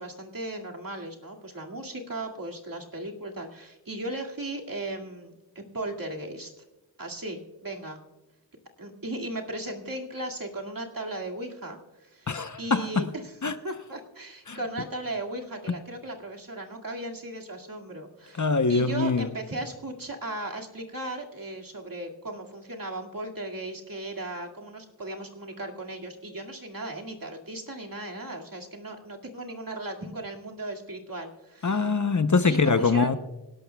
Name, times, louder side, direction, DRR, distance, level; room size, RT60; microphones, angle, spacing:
voice 1, 0.0-5.3 5.7-6.5 7.0-8.0 8.8-12.3 12.6-13.3 13.6-31.9 32.5-33.1, right 1 dB, 45° right, 2.2 m, -36 dB
voice 2, 12.3-13.1 13.4-13.5 14.5-14.6 18.4-19.3 31.6-33.2, left 4 dB, 40° left, 0.8 m, -23 dB
25.5 x 12.0 x 2.3 m
cardioid pair, 45°, 45 cm